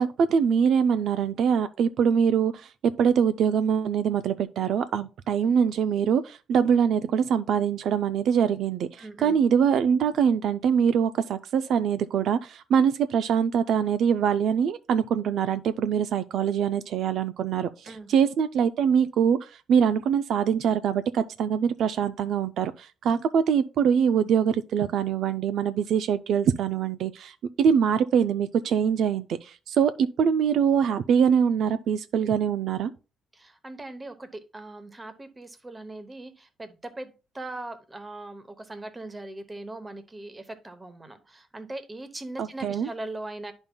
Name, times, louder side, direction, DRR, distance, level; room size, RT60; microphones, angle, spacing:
voice 1, 0.0-2.7 3.0-32.9 42.4-42.9, right 7 dB, 60° right, 0.3 m, -23 dB
voice 2, 9.0-9.3 17.8-18.1 33.3-43.5, right 2 dB, 15° right, 0.8 m, -40 dB
11.0 x 5.3 x 2.2 m
cardioid pair, 165°, 0 cm